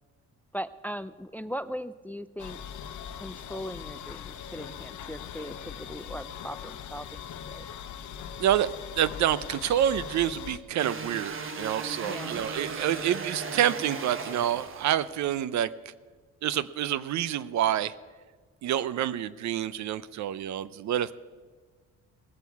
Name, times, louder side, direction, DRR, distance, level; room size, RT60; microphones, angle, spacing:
voice 1, 0.5-2.6 3.1-7.7 12.0-12.4, equal, 5° left, 15 dB, 0.3 m, -39 dB
sound 1, 2.4-10.6, left 8 dB, 75° left, 0.9 m, -41 dB
voice 2, 8.9-15.7 16.4-17.9 18.6-21.1, right 11 dB, 65° right, 17 dB, 0.6 m, -27 dB
sound 2, 10.8-15.3, right 4 dB, 45° right, 1.3 m, -37 dB
19.5 x 8.3 x 4.6 m, 1.4 s
cardioid pair, 90°, 30 cm